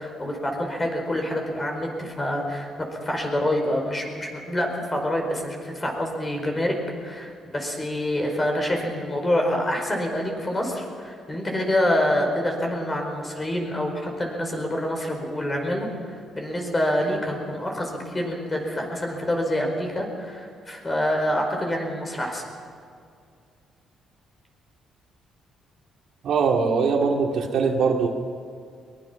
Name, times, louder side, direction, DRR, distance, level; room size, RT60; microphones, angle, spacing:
voice 1, 0.0-6.8 7.0-22.4, left 1 dB, 20° left, 2 dB, 4.8 m, -26 dB
voice 2, 26.2-28.1, right 5 dB, 60° right, 2 dB, 2.3 m, -21 dB
23.0 x 21.0 x 5.8 m, 2.3 s
cardioid pair, 135°, 0 cm